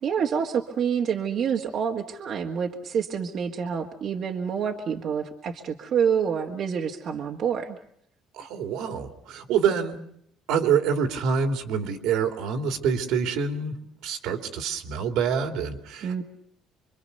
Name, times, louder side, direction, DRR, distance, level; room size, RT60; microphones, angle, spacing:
voice 1, 0.0-7.8 16.0-16.2, right 7 dB, 55° right, 2 dB, 1.9 m, -27 dB
voice 2, 8.3-10.0 10.5-13.8 14.0-16.2, right 6 dB, 80° right, 6 dB, 3.0 m, -26 dB
26.5 x 24.0 x 6.8 m, 0.70 s
cardioid pair, 105°, 0 cm